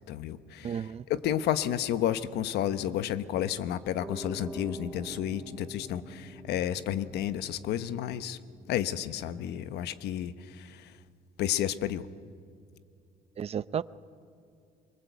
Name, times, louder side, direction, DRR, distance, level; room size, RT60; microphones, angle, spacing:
voice 1, 0.1-8.4 8.7-10.8 11.4-12.1, left 11 dB, 75° left, 1.1 m, -31 dB
voice 2, 0.6-1.0 13.4-13.8, right 8 dB, 35° right, 0.7 m, -32 dB
Piano, 4.0-10.5, right 1 dB, ahead, 2.6 m, -46 dB
25.5 x 24.0 x 8.2 m
cardioid pair, 110°, 17 cm